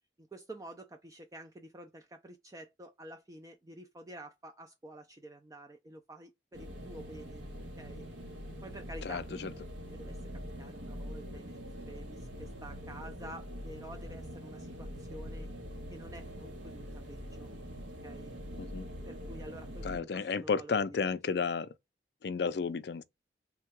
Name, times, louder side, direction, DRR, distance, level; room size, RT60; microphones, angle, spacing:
voice 1, 0.2-7.4 7.8-8.1 8.6-9.3 9.9-10.3 10.6-11.6 11.9-15.5 15.9-17.5 18.0-18.3 19.1-21.2, right 1 dB, 20° right, 0.4 m, -49 dB
sound 1, 6.5-20.0, equal, 80° right, 1.1 m, -44 dB
voice 2, 9.0-9.5 18.6-18.9 19.8-21.7 22.2-23.0, left 5 dB, 65° left, 0.4 m, -32 dB
3.6 x 2.2 x 4.4 m
head